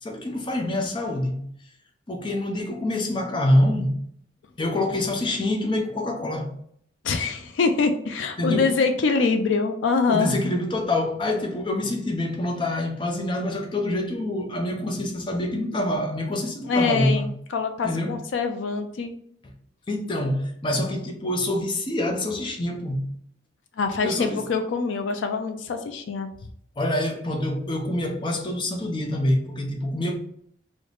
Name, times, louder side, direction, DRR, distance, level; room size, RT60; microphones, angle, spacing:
voice 1, 0.0-1.5 2.1-4.0 4.6-6.6 8.4-8.8 10.1-17.3 17.8-18.2 19.9-23.1 24.0-24.5 26.8-30.1, left 1 dB, 25° left, 0.5 m, -26 dB
voice 2, 7.0-10.3 16.7-19.1 23.8-26.3, left 4 dB, 85° left, 0.4 m, -24 dB
3.2 x 2.1 x 3.8 m
head